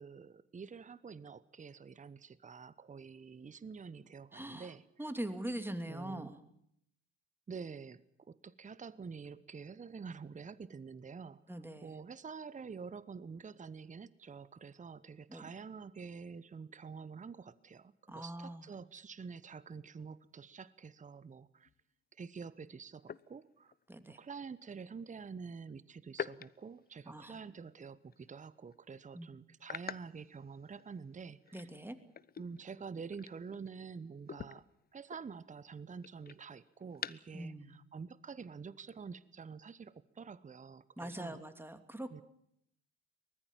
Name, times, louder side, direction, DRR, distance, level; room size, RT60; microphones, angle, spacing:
voice 1, 0.0-4.8 5.9-6.4 7.5-21.7 22.1-23.7 24.1-31.7 32.4-34.6 34.9-41.4 42.1-42.2, right 5 dB, 25° right, 18 dB, 1.0 m, -48 dB
voice 2, 4.3-4.7 5.0-6.4 11.5-12.0 15.3-15.5 18.1-18.7 23.9-24.2 27.1-27.4 29.1-29.3 31.5-32.0 37.3-37.7 41.0-42.1, right 1 dB, 5° right, 9 dB, 2.8 m, -42 dB
sound 1, 21.7-21.8 23.0-23.9 26.1-27.7 28.1-28.3 28.7-28.8 29.6-31.1 31.4-33.9 34.2-37.4, left 7 dB, 30° left, 0.8 m, -47 dB
23.5 x 19.5 x 7.5 m, 0.73 s
figure-of-eight pair, 50°, 31 cm